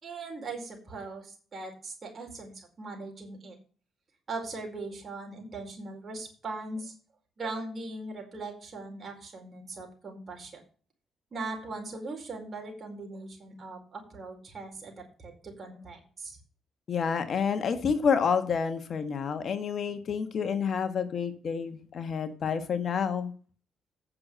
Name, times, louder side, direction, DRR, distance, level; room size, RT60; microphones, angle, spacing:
voice 1, 0.0-3.6 4.3-6.9 7.4-10.6 11.3-16.4, right 3 dB, 40° right, 2 dB, 4.5 m, -40 dB
voice 2, 16.9-23.3, left 6 dB, 55° left, 9 dB, 1.5 m, -29 dB
9.5 x 6.7 x 6.2 m, 0.41 s
cardioid pair, 90°, 0 cm